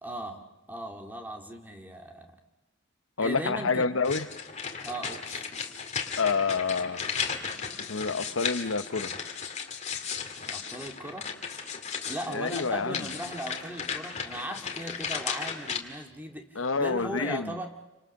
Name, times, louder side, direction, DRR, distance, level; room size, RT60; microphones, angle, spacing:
voice 1, 0.0-2.4 3.2-3.9 4.8-5.5 10.5-11.3 12.1-17.7, right 1 dB, 10° right, 4 dB, 2.0 m, -38 dB
voice 2, 3.2-4.2 6.2-7.1 7.8-9.1 12.3-13.1 16.6-17.5, left 4 dB, 75° left, 12 dB, 0.9 m, -28 dB
sound 1, 4.0-15.8, left 6 dB, 35° left, 2.2 m, -35 dB
29.0 x 25.5 x 6.5 m, 1.0 s
head